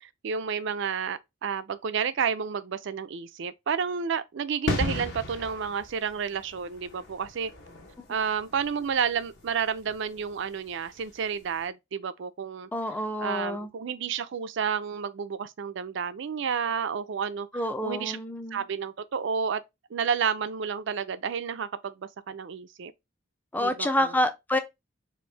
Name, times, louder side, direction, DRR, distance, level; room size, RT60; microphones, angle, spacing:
voice 1, 0.0-7.5 8.1-12.7 13.2-17.5 17.8-18.2 18.5-19.6 19.9-22.9 23.6-24.2, right 6 dB, 65° right, 0.4 m, -30 dB
sound 1, 4.7-11.2 11.4-11.6, left 2 dB, 60° left, 1.2 m, -36 dB
voice 2, 12.7-13.7 17.5-18.6 23.5-24.6, left 1 dB, 10° left, 0.4 m, -28 dB
4.3 x 2.6 x 3.2 m
head